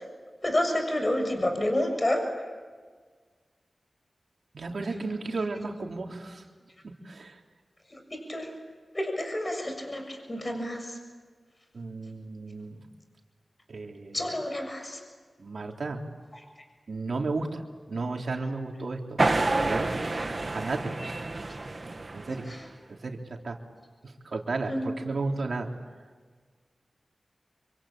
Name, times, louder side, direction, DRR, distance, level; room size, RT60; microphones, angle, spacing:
voice 1, 0.4-2.2 7.9-8.5 8.9-10.9 14.1-15.0 24.7-24.8, left 1 dB, 35° left, 4 dB, 7.1 m, -29 dB
voice 2, 4.5-6.4 7.0-7.4 11.7-12.8 13.7-14.3 15.4-16.0 16.9-17.6 17.9-19.9 20.5-21.2 22.1-22.4 22.9-23.6 24.0-25.7, right 3 dB, 70° right, 1 dB, 3.7 m, -33 dB
sound 1, 19.2-22.7, right 2 dB, 45° right, 2.1 m, -29 dB
27.0 x 24.5 x 8.9 m, 1.5 s
cardioid pair, 45°, 0 cm